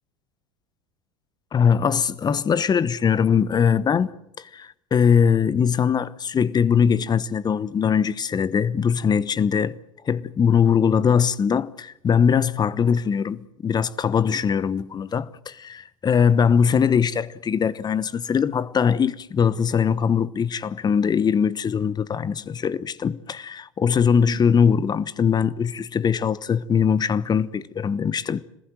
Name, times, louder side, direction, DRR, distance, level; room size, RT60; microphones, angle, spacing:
voice 1, 1.5-4.1 4.4-9.7 10.1-28.4, left 7 dB, 25° left, 1.1 m, -21 dB
27.0 x 20.5 x 7.8 m
figure-of-eight pair, 80°, 17 cm